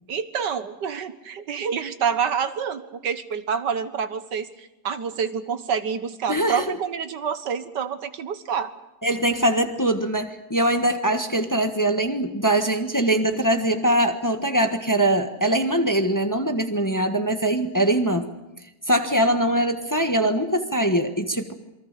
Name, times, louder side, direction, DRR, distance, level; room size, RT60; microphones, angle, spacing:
voice 1, 0.1-8.7, right 7 dB, 80° right, 10 dB, 2.0 m, -27 dB
voice 2, 6.3-6.6 9.0-18.3 18.9-21.5, right 1 dB, 10° left, 6 dB, 1.3 m, -22 dB
28.0 x 23.5 x 6.8 m, 0.94 s
omnidirectional pair, 1.8 m